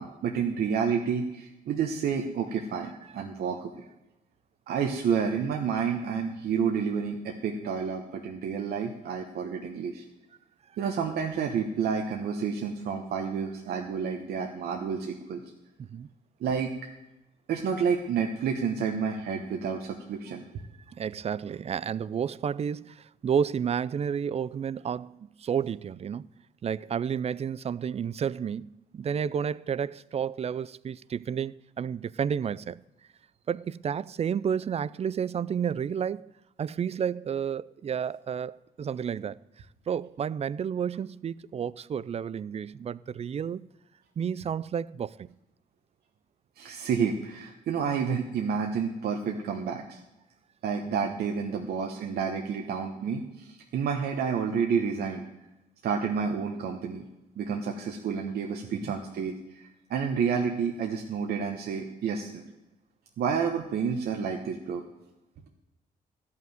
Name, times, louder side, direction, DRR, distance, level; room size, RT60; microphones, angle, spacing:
voice 1, 0.0-3.7 4.7-10.0 10.8-15.4 16.4-16.7 17.5-20.4 46.6-50.0 50.6-55.2 55.8-57.0 57.4-62.4 63.2-64.8, right 6 dB, 75° right, 1.1 m, -30 dB
voice 2, 20.9-26.3 26.6-32.8 33.5-36.3 36.6-39.4 39.9-43.6 44.2-45.3 58.8-58.9, right 7 dB, 40° right, 0.4 m, -31 dB
12.5 x 5.8 x 9.2 m
cardioid pair, 70°, 16 cm